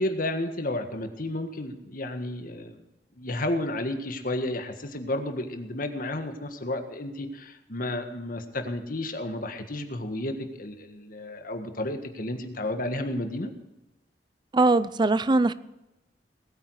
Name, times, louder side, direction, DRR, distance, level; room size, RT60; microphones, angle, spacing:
voice 1, 0.0-2.8 3.2-13.5, left 1 dB, 50° left, 6 dB, 1.6 m, -32 dB
voice 2, 14.5-15.5, right 2 dB, 25° right, 15 dB, 0.5 m, -21 dB
20.0 x 9.1 x 4.8 m, 0.98 s
head